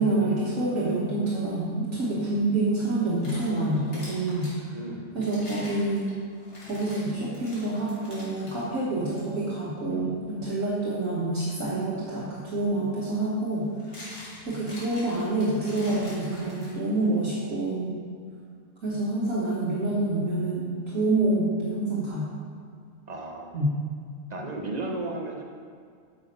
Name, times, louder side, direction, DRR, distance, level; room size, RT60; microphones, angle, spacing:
voice 1, 0.0-4.8 5.1-6.2 6.7-13.7 14.4-18.0 18.8-22.3 23.5-23.7, right 2 dB, 65° right, -7 dB, 1.7 m, -27 dB
sound 1, 2.9-4.6 5.2-8.6 9.1-9.2 9.9-10.1 12.2-12.3 13.5-17.0, left 1 dB, 80° left, 3.0 m, -45 dB
voice 2, 4.7-5.0 23.1-23.5 24.3-25.4, right 2 dB, 35° right, 1 dB, 0.9 m, -34 dB
8.5 x 6.3 x 5.2 m, 2.1 s
omnidirectional pair, 1.5 m